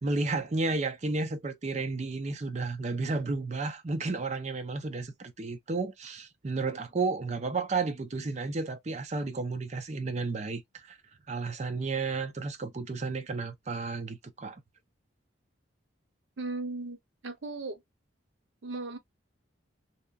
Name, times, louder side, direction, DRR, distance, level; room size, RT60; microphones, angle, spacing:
voice 1, 0.0-10.6 10.9-11.0 11.3-14.6, right 3 dB, 35° right, 0.5 m, -32 dB
voice 2, 16.4-17.0 17.2-17.8 18.6-19.0, right 3 dB, 75° right, 0.6 m, -36 dB
2.8 x 2.3 x 2.3 m
head